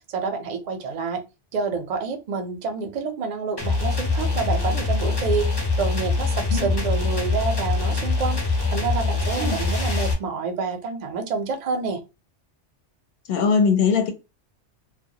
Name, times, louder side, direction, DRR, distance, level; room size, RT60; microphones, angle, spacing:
voice 1, 0.1-1.2 1.5-12.0, right 5 dB, 50° right, 0.5 m, -28 dB
sound 1, 3.6-10.1, left 3 dB, 25° left, 0.6 m, -24 dB
voice 2, 13.3-14.1, left 5 dB, 65° left, 0.7 m, -20 dB
2.1 x 2.1 x 2.7 m
omnidirectional pair, 1.2 m